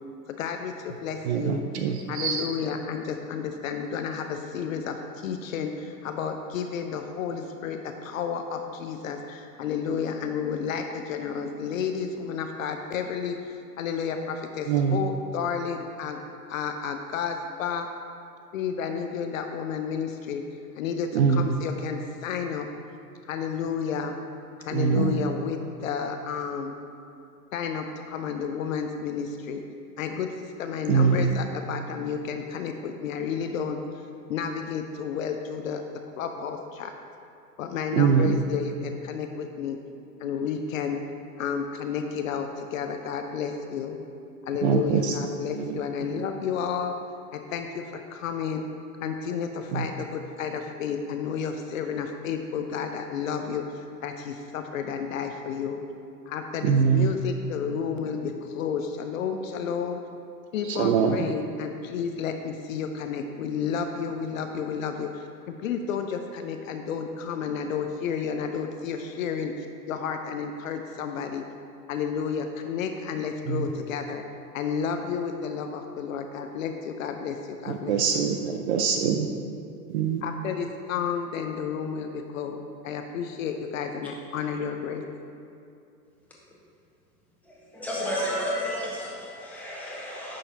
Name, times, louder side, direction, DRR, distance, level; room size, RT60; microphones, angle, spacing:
voice 1, 0.3-1.6 2.1-16.2 16.5-17.9 18.5-20.4 20.8-22.7 23.3-24.2 24.6-26.8 27.5-29.6 30.0-34.0 34.3-35.8 36.2-36.9 37.6-39.8 40.2-41.0 41.4-44.0 44.5-47.0 47.3-48.6 49.0-55.8 56.3-60.0 60.5-71.4 71.9-74.2 74.5-78.0 80.2-85.1, left 6 dB, 55° left, 6 dB, 0.6 m, -31 dB
voice 2, 1.2-2.5 14.7-15.0 21.1-21.4 24.7-25.2 30.9-31.4 37.9-38.4 44.6-45.8 46.1-46.2 49.7-49.9 56.6-57.1 60.6-61.3 73.5-73.7 77.7-79.3 79.9-80.2, right 6 dB, 45° right, 4 dB, 0.5 m, -24 dB
voice 3, 87.4-90.4, equal, 5° left, -5 dB, 1.5 m, -32 dB
9.6 x 6.4 x 2.8 m, 2.5 s
figure-of-eight pair, 100°, 49 cm